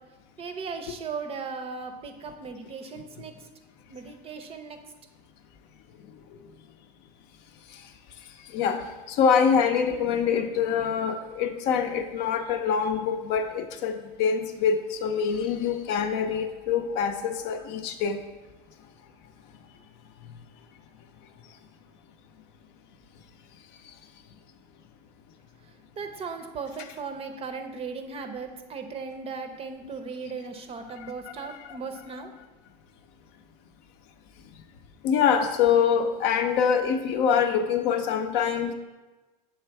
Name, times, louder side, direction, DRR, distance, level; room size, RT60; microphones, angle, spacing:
voice 1, 0.4-3.3 3.9-4.8 26.0-32.3, right 5 dB, 30° right, 6 dB, 0.6 m, -37 dB
voice 2, 8.5-18.2 35.0-38.7, left 7 dB, 55° left, 7 dB, 0.6 m, -25 dB
7.0 x 3.3 x 4.6 m, 1.2 s
supercardioid pair, 125°, 20 cm